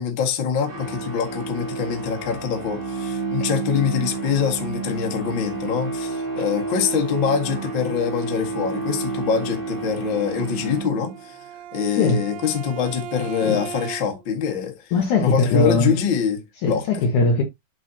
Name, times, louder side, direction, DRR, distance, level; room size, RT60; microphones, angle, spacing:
voice 1, 0.0-11.4 11.7-14.8 15.2-16.8, left 7 dB, 90° left, 1.0 m, -24 dB
sound 1, 0.6-11.4, right 4 dB, 25° right, 1.2 m, -30 dB
Bowed string instrument, 11.0-14.3, right 10 dB, 80° right, 2.9 m, -37 dB
voice 2, 14.9-16.0 16.6-17.4, left 3 dB, 75° left, 1.8 m, -20 dB
11.0 x 4.1 x 2.8 m
omnidirectional pair, 5.3 m